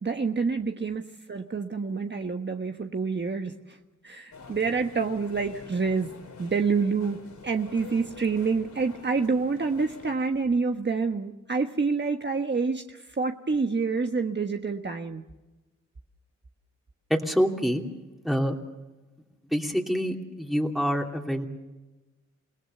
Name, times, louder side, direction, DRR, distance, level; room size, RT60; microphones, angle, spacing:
voice 1, 0.0-1.0 1.3-3.8 4.0-6.1 6.4-7.2 7.4-15.2, right 4 dB, 35° right, 4 dB, 1.4 m, -27 dB
sound 1, 4.3-10.1, left 4 dB, 70° left, 4.6 m, -47 dB
voice 2, 17.1-17.8 18.2-18.6 19.5-21.5, equal, ahead, 1 dB, 2.9 m, -26 dB
29.5 x 18.0 x 6.8 m, 1.1 s
cardioid pair, 75°, 30 cm